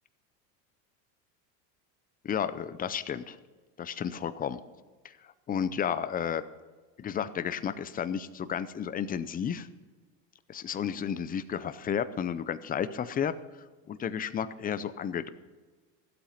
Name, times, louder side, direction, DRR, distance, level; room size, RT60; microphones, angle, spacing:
voice 1, 2.2-3.4 3.8-4.6 5.0-5.1 5.5-6.4 7.0-9.7 10.5-13.3 13.9-15.3, left 8 dB, 20° left, 13 dB, 0.5 m, -32 dB
15.5 x 8.4 x 5.8 m, 1.3 s
supercardioid pair, 125°, 48 cm